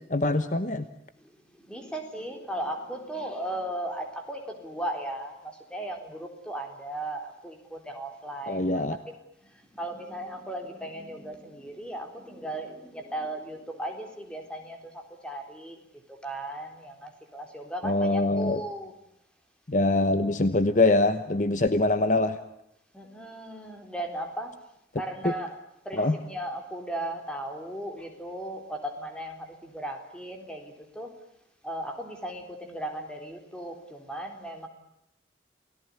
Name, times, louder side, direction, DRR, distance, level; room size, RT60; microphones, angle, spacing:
voice 1, 0.1-0.8 8.5-9.0 17.8-18.6 19.7-22.4 25.2-25.3 25.9-26.2, left 2 dB, 45° left, 11 dB, 1.1 m, -24 dB
voice 2, 1.2-9.1 9.4-15.8 16.1-18.9 22.9-24.6 24.9-25.6 25.8-31.2 31.6-34.7, right 1 dB, 5° left, 4 dB, 3.9 m, -37 dB
28.5 x 18.5 x 9.8 m, 0.81 s
head